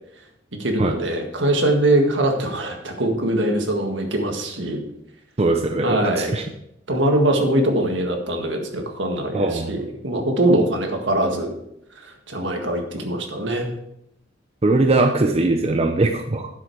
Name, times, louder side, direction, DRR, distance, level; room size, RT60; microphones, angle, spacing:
voice 1, 0.6-4.8 5.8-6.4 6.9-11.5 12.0-13.7, right 1 dB, 75° right, 4 dB, 1.7 m, -22 dB
voice 2, 5.4-6.4 9.3-9.7 14.6-16.5, right 2 dB, 35° right, 4 dB, 0.6 m, -20 dB
9.9 x 7.6 x 4.6 m, 0.80 s
head